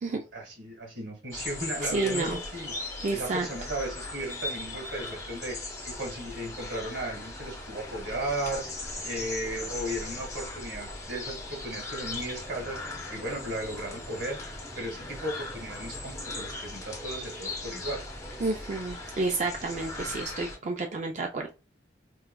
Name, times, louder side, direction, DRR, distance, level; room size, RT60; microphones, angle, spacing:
voice 1, 0.0-2.7 3.1-8.7 9.0-12.8 13.1-14.4 14.7-18.0, right 1 dB, 80° right, 1.6 m, -35 dB
sound 1, 1.3-20.6, left 2 dB, 15° left, 0.7 m, -38 dB
voice 2, 1.8-2.4 3.0-3.5 18.4-21.5, right 3 dB, 40° right, 0.4 m, -30 dB
4.5 x 2.3 x 2.2 m
head